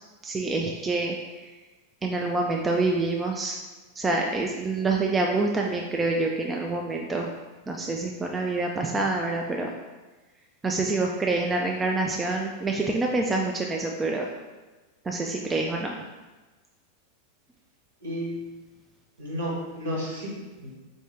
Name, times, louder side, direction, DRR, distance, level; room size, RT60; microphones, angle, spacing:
voice 1, 0.2-1.2 2.0-3.6 4.0-7.3 7.7-9.7 10.6-14.3 15.1-16.0, right 3 dB, 15° right, 1 dB, 0.3 m, -26 dB
voice 2, 18.0-18.3 19.2-20.8, equal, 65° right, -4 dB, 1.4 m, -32 dB
4.3 x 2.7 x 3.4 m, 1.2 s
figure-of-eight pair, 90°, 0 cm